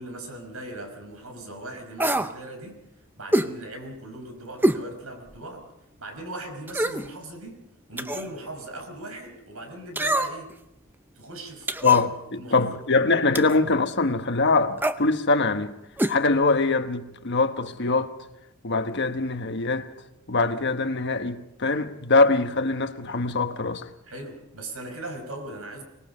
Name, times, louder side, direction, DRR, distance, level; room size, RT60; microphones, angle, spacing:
voice 1, 0.0-2.9 3.2-5.7 6.0-7.6 7.9-10.5 11.2-11.7 12.4-12.8 24.0-25.8, right 1 dB, 80° right, 5.5 m, -39 dB
sound 1, 2.0-2.3 3.3-3.5 4.6-4.8 5.3-5.4 6.7-7.1 8.0-8.3 10.0-10.5 11.7-12.0 13.3-13.6 14.8-15.0 16.0-16.2 16.4-16.5, right 1 dB, 10° right, 0.7 m, -25 dB
voice 2, 11.8-15.7 16.1-18.2 18.6-19.9 20.3-23.9, left 3 dB, 55° left, 1.2 m, -23 dB
24.5 x 20.5 x 5.5 m
head